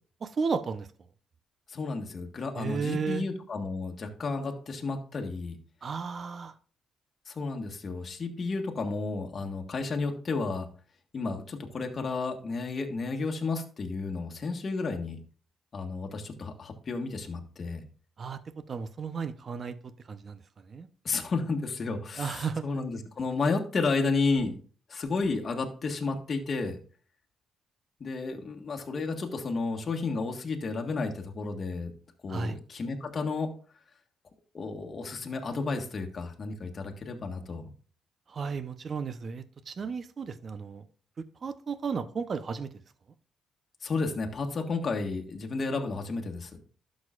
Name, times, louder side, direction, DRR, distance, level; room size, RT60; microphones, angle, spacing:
voice 1, 0.2-0.9 2.6-3.2 5.8-6.5 18.2-18.4 18.7-19.8 20.1-20.4 20.7-20.9 22.2-22.6 32.3-32.6 38.3-40.8 41.4-42.7, right 5 dB, 45° right, 0.8 m, -33 dB
voice 2, 1.7-5.5 7.2-10.7 11.1-15.2 15.7-17.8 21.0-24.5 24.9-26.8 28.0-31.9 32.2-33.5 34.5-37.7 43.8-46.6, left 3 dB, 40° left, 1.6 m, -32 dB
12.0 x 6.4 x 2.5 m
cardioid pair, 90°, 0 cm